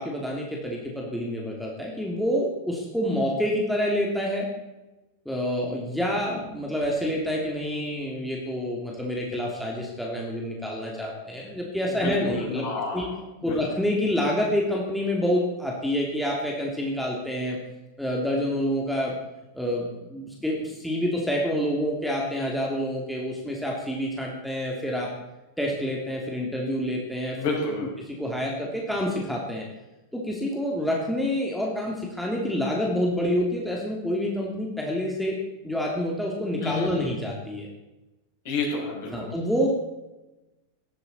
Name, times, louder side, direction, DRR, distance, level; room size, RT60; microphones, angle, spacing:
voice 1, 0.0-4.5 5.2-12.6 12.9-13.1 13.4-17.6 18.0-19.1 19.5-25.1 25.6-27.4 28.2-29.6 30.1-35.4 35.6-37.7 39.1-39.7, equal, ahead, -3 dB, 3.1 m, -27 dB
voice 2, 11.9-13.0 13.4-13.6 27.3-27.9 36.6-36.9 38.4-39.3, left 3 dB, 50° left, -2 dB, 6.9 m, -29 dB
19.0 x 13.5 x 4.4 m, 1.0 s
figure-of-eight pair, 90°, 0 cm